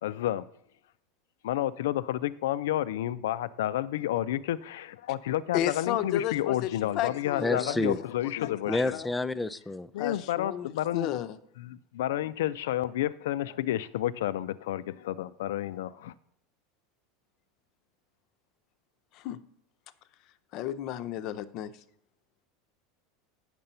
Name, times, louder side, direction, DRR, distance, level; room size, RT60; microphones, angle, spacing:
voice 1, 0.0-0.5 1.4-9.0 9.9-11.1 11.6-16.1, left 13 dB, 85° left, 0.4 m, -30 dB
voice 2, 5.5-8.0 8.7-9.1 10.0-11.4 19.1-19.4 20.5-21.7, left 11 dB, 45° left, 0.6 m, -33 dB
voice 3, 7.4-8.0 8.7-9.9, left 2 dB, 5° left, 0.4 m, -29 dB
8.9 x 6.7 x 5.5 m
supercardioid pair, 145°, 0 cm